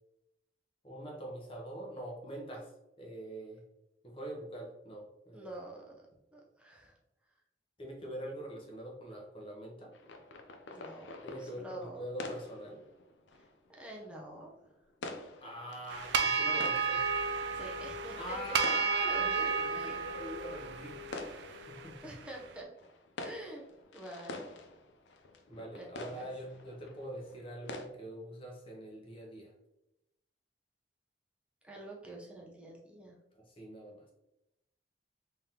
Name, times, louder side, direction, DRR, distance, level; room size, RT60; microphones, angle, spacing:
voice 1, 0.8-2.7 3.0-3.6 4.0-5.6 7.8-9.9 11.2-12.8 15.4-17.1 18.2-21.0 21.5-22.1 25.5-29.5 33.3-34.0, equal, 30° left, -1 dB, 0.9 m, -44 dB
voice 2, 5.3-6.1 6.3-7.0 10.7-11.1 11.4-12.1 13.8-14.5 17.5-18.4 19.0-20.0 22.0-22.7 23.2-23.6 23.9-24.5 25.7-26.3 31.6-33.2, right 1 dB, 5° right, -2 dB, 0.7 m, -47 dB
sound 1, 9.9-27.9, left 2 dB, 90° left, 0.5 m, -48 dB
sound 2, 15.9-22.3, right 5 dB, 75° right, 0.4 m, -33 dB
3.7 x 3.5 x 2.8 m, 0.89 s
head